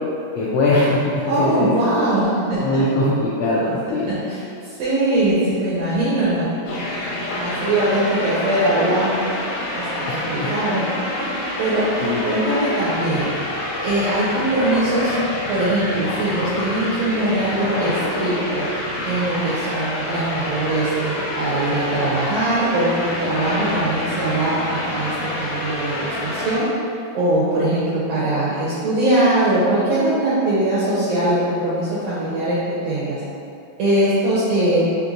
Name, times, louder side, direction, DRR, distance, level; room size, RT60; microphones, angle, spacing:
voice 1, 0.3-0.9 1.2-1.7 2.6-4.1 10.1-10.5 12.0-12.2, left 2 dB, 90° left, -7 dB, 1.4 m, -21 dB
voice 2, 1.3-2.9 4.1-6.5 7.4-9.1 9.7-10.8 11.2-13.3 13.8-15.1 15.5-18.7 19.0-26.7 27.1-32.6 32.8-33.2 33.8-34.8, right 1 dB, 80° right, -9 dB, 1.5 m, -21 dB
sound 1, 6.7-26.6, left 1 dB, 70° left, 2.0 m, -27 dB
5.2 x 2.8 x 2.5 m, 2.6 s
omnidirectional pair, 3.6 m